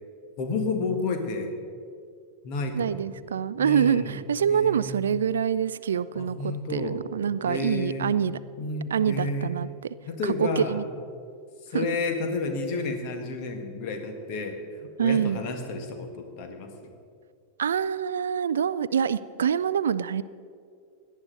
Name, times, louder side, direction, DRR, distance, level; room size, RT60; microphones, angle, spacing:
voice 1, 0.4-1.5 2.4-3.0 3.6-4.1 4.5-5.0 6.1-7.0 7.4-8.2 8.6-9.5 10.1-10.8 11.7-14.6 15.0-16.7, left 3 dB, 45° left, 5 dB, 1.7 m, -31 dB
voice 2, 2.7-8.4 8.9-9.9 10.2-10.9 11.7-11.9 15.0-15.4 17.6-20.2, right 8 dB, 65° right, 17 dB, 0.3 m, -26 dB
17.5 x 11.0 x 4.0 m, 2.3 s
figure-of-eight pair, 90°, 0 cm